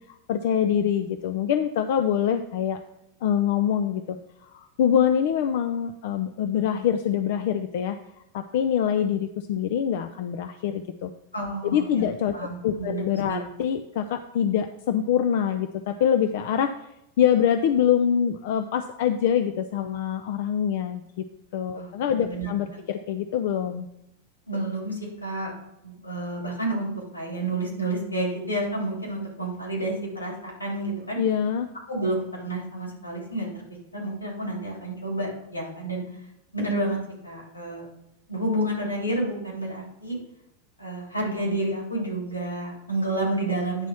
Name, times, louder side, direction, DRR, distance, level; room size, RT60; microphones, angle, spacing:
voice 1, 0.1-2.8 3.2-4.2 4.5-8.0 8.3-11.1 11.6-16.7 17.2-21.0 21.5-23.9 31.2-31.7, left 9 dB, 50° left, 8 dB, 0.5 m, -25 dB
voice 2, 11.3-12.1 12.3-13.4 21.7-21.9 22.3-22.5 24.5-25.5 25.8-31.2 31.9-33.6 33.9-36.0 36.5-37.0 37.2-37.9 38.3-40.2 40.8-43.9, right 1 dB, 85° left, -1 dB, 3.1 m, -30 dB
9.7 x 4.1 x 6.1 m, 0.82 s
figure-of-eight pair, 90°, 0 cm